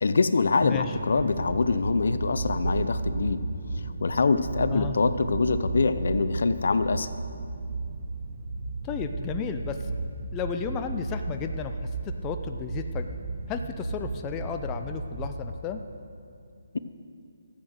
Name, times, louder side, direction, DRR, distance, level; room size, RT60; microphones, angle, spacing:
voice 1, 0.0-3.4 4.0-7.1, left 4 dB, 65° left, 12 dB, 0.6 m, -24 dB
voice 2, 0.6-1.0 4.7-4.9 8.8-9.9 10.3-11.8 12.0-13.1 13.5-15.8, left 7 dB, 20° left, 6 dB, 0.5 m, -33 dB
sound 1, 0.6-15.4, right 3 dB, 30° right, 1.3 m, -34 dB
13.0 x 8.0 x 6.5 m, 2.4 s
hypercardioid pair, 155°, 0 cm